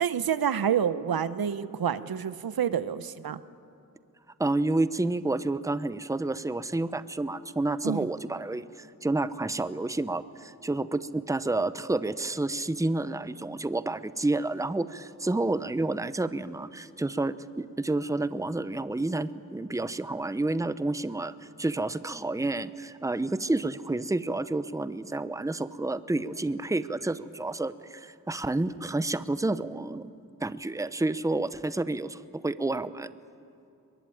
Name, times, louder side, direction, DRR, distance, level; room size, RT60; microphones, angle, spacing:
voice 1, 0.0-3.4 7.8-8.1, right 8 dB, 80° right, 14 dB, 0.9 m, -28 dB
voice 2, 4.4-30.1 30.4-33.1, right 2 dB, 10° right, 14 dB, 0.7 m, -30 dB
23.0 x 21.5 x 9.2 m, 2.6 s
wide cardioid pair, 70°, 35 cm